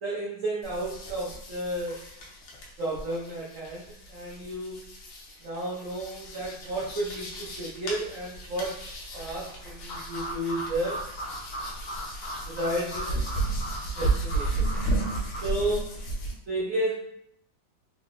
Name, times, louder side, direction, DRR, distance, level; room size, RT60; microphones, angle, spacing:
voice 1, 0.0-2.0 2.8-4.8 5.4-8.7 9.1-11.0 12.5-13.2 13.9-14.7 15.4-15.8 16.5-16.9, right 1 dB, 85° right, -4 dB, 0.7 m, -32 dB
sound 1, 0.6-16.3, right 2 dB, 70° left, 1.4 m, -34 dB
sound 2, 9.9-15.4, equal, 50° left, 0.8 m, -38 dB
3.7 x 2.0 x 3.6 m, 0.74 s
omnidirectional pair, 2.1 m